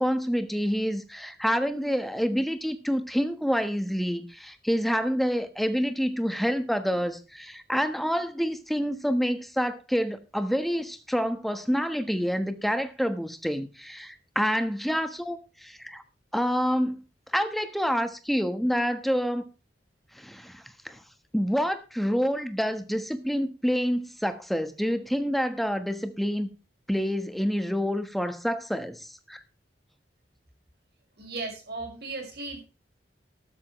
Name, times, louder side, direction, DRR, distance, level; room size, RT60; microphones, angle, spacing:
voice 1, 0.0-16.0 16.3-17.0 17.3-19.4 20.1-21.0 21.3-26.5 26.9-29.4, equal, ahead, 9 dB, 1.3 m, -27 dB
voice 2, 31.2-32.7, right 3 dB, 60° right, 4 dB, 5.7 m, -36 dB
13.5 x 13.0 x 3.2 m, 0.31 s
head